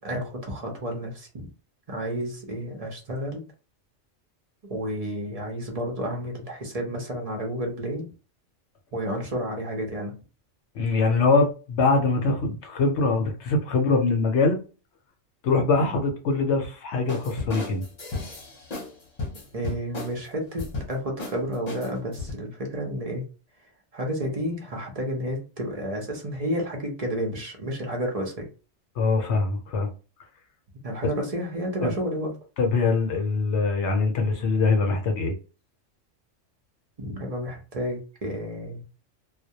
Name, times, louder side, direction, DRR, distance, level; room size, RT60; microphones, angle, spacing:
voice 1, 0.0-1.5 1.9-3.4 4.7-8.1 8.9-10.1 19.5-23.2 23.9-28.5 30.8-32.3 37.0-38.8, equal, 40° right, 0.6 m, -31 dB
voice 2, 10.8-14.6 15.4-17.8 29.0-29.9 31.8-31.9 32.6-35.3, left 3 dB, 70° left, 0.8 m, -23 dB
sound 1, 17.1-18.9 19.2-20.2 20.6-20.9 21.2-21.4 21.7-22.3, left 3 dB, 40° left, 0.8 m, -34 dB
2.2 x 2.1 x 2.7 m
omnidirectional pair, 1.3 m